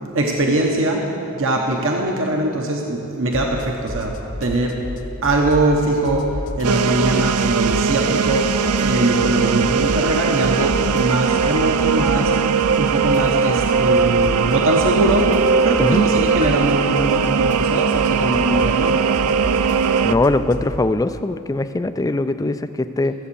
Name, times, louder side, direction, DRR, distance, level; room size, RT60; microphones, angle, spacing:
voice 1, 0.1-1.0 1.3-4.1 4.4-4.8 5.2-6.3 6.6-8.5 8.8-12.5 12.8-15.3 15.6-19.0, right 2 dB, 60° right, 1 dB, 1.0 m, -21 dB
sound 1, 3.3-3.6 3.9-5.8 6.1-8.0 8.2-10.2 10.4-14.5 14.8-20.7, left 1 dB, 35° left, 0.9 m, -30 dB
sound 2, 6.6-20.1, right 6 dB, 80° right, 0.4 m, -19 dB
voice 2, 20.0-23.1, left 2 dB, 15° left, 11 dB, 0.3 m, -21 dB
14.0 x 8.1 x 7.0 m, 2.9 s
head